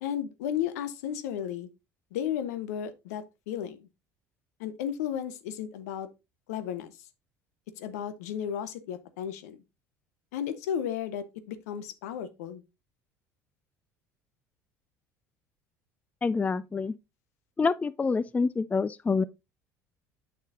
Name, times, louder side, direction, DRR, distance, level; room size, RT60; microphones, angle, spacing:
voice 1, 0.0-1.7 2.1-3.9 4.6-6.1 6.5-7.0 7.8-9.6 10.3-12.6, left 9 dB, 70° left, 0.7 m, -34 dB
voice 2, 16.2-16.9 17.6-19.2, left 4 dB, 15° left, 0.3 m, -27 dB
7.8 x 6.4 x 2.6 m
figure-of-eight pair, 60°, 9 cm